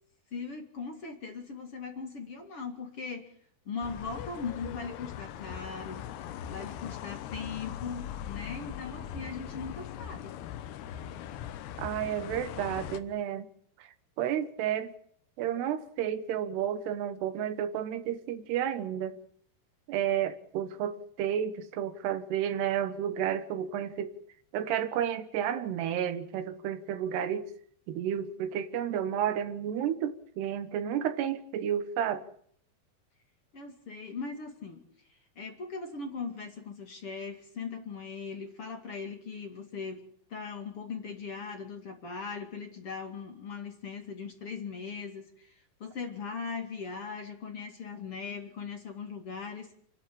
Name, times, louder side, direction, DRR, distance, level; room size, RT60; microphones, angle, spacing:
voice 1, 0.3-3.3 3.7-6.1 6.5-10.3 33.5-34.8 35.4-49.8, left 5 dB, 40° left, 2.7 m, -39 dB
sound 1, 3.8-13.0, left 10 dB, 80° left, 3.1 m, -40 dB
voice 2, 11.8-13.5 14.2-14.9 15.4-19.2 19.9-24.1 24.5-27.5 27.9-32.2, right 9 dB, 85° right, 3.4 m, -31 dB
28.5 x 12.0 x 8.7 m
omnidirectional pair, 4.6 m